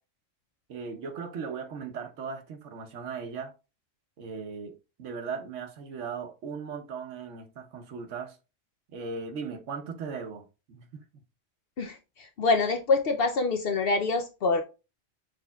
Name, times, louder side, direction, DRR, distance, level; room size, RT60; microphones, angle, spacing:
voice 1, 0.7-3.5 4.2-8.4 8.9-11.0, right 5 dB, 70° right, 1.1 m, -38 dB
voice 2, 11.8-14.6, left 3 dB, 60° left, 0.6 m, -26 dB
6.2 x 3.4 x 2.2 m
omnidirectional pair, 1.3 m